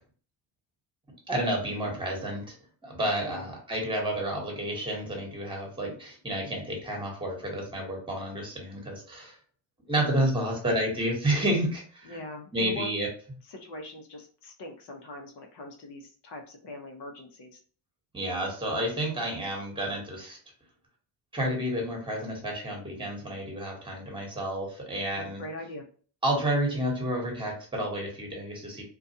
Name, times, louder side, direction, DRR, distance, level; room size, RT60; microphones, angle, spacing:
voice 1, 1.3-2.5 2.8-9.3 9.9-12.2 12.5-13.1 18.1-20.4 21.3-25.4 26.2-28.8, right 1 dB, 10° right, 1 dB, 1.2 m, -30 dB
voice 2, 10.2-10.6 12.0-12.9 13.4-17.6 25.1-25.9, left 1 dB, 55° left, 3 dB, 0.9 m, -42 dB
2.4 x 2.3 x 2.7 m, 0.42 s
supercardioid pair, 85°, 49 cm